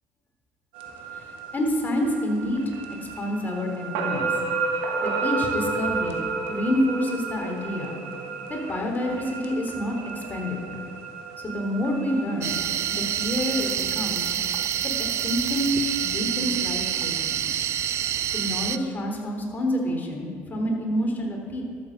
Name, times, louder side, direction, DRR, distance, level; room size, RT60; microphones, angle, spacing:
sound 1, 0.7-18.7, right 4 dB, 90° right, 1.6 m, -33 dB
voice 1, 1.5-2.6 3.2-4.3 5.0-6.2 6.5-8.0 8.5-10.8 11.4-12.5 12.9-14.3 15.2-15.7 16.0-17.5 18.3-21.6, left 1 dB, 30° left, 0 dB, 3.6 m, -28 dB
sound 2, 12.4-18.8, right 10 dB, 55° right, 0.5 m, -27 dB
12.5 x 7.7 x 6.9 m, 2.1 s
supercardioid pair, 75°, 6 cm